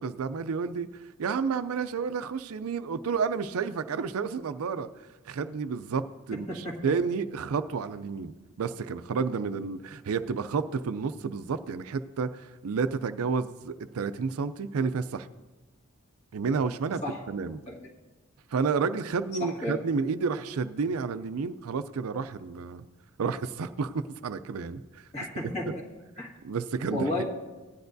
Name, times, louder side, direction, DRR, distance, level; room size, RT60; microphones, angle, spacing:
voice 1, 0.0-4.9 5.3-8.3 8.6-15.3 16.3-17.0 17.3-17.6 18.5-22.9 23.2-25.0 26.4-27.1, right 5 dB, 80° right, 12 dB, 0.4 m, -30 dB
voice 2, 6.3-6.7 17.0-17.2 17.7-17.8 19.4-19.7 25.1-25.8 26.2-26.3 26.9-27.2, left 1 dB, 30° left, -3 dB, 1.6 m, -32 dB
16.0 x 10.0 x 2.7 m, 1.2 s
head